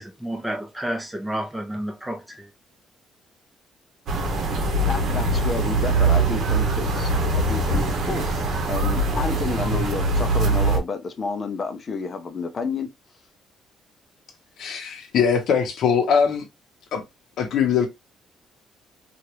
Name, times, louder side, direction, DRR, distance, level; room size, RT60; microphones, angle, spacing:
voice 1, 0.0-2.5, right 1 dB, 5° right, 0.9 m, -30 dB
sound 1, 4.1-10.8, right 2 dB, 55° right, 1.0 m, -22 dB
voice 2, 4.9-12.9, left 4 dB, 40° left, 0.7 m, -30 dB
voice 3, 14.6-16.5 16.9-17.0 17.4-17.9, left 7 dB, 65° left, 0.8 m, -21 dB
3.0 x 2.5 x 3.0 m
cardioid pair, 115°, 0 cm